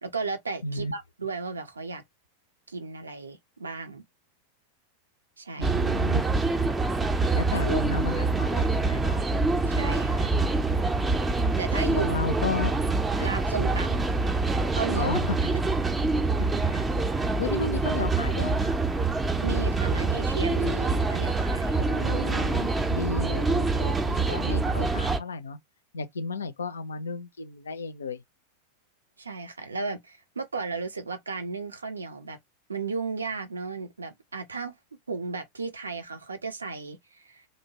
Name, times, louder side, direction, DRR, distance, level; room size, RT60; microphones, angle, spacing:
voice 1, 0.0-2.0 2.7-4.0 5.4-5.8 9.6-10.3 11.6-12.2 13.2-14.1 14.7-15.2 19.4-21.8 29.2-32.4 32.7-34.7 35.1-37.5, right 4 dB, 75° right, 0.6 m, -34 dB
voice 2, 5.6-6.2 7.3-9.2 11.9-12.8 13.2-13.3 15.0-15.4 16.4-16.8 17.1-18.8 21.7-25.6 25.9-28.2, left 3 dB, 70° left, 0.4 m, -33 dB
sound 1, 5.6-25.2, right 3 dB, 10° right, 0.5 m, -25 dB
2.7 x 2.2 x 2.8 m
figure-of-eight pair, 90°, 0 cm